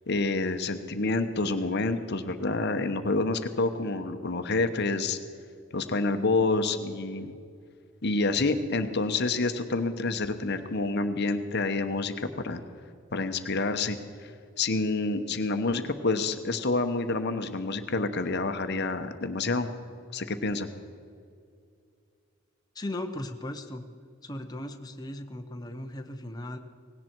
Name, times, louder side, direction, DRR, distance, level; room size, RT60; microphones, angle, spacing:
voice 1, 0.1-5.2 5.7-7.3 8.0-12.6 13.1-14.3 14.6-19.7 20.1-20.7, left 3 dB, 50° left, 8 dB, 0.9 m, -28 dB
voice 2, 22.7-23.9 24.2-26.6, left 1 dB, 15° left, 4 dB, 0.8 m, -37 dB
18.5 x 17.0 x 4.6 m, 2.4 s
head